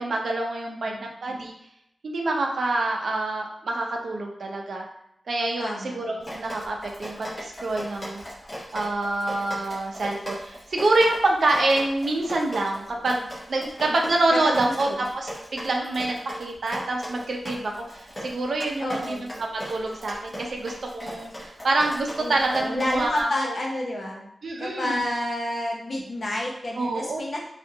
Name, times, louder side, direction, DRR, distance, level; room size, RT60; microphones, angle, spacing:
voice 1, 0.0-1.5 2.0-4.8 5.3-8.2 8.7-23.3 24.4-25.0 26.8-27.2, right 2 dB, 70° right, 1 dB, 0.6 m, -26 dB
voice 2, 0.7-1.0 5.6-6.0 14.3-15.0 18.8-19.3 22.2-24.2 24.6-27.5, left 1 dB, 50° left, -2 dB, 0.7 m, -29 dB
Drip, 6.2-23.2, equal, 20° left, 1.0 m, -38 dB
3.4 x 2.4 x 2.7 m, 0.75 s
wide cardioid pair, 130°, 0 cm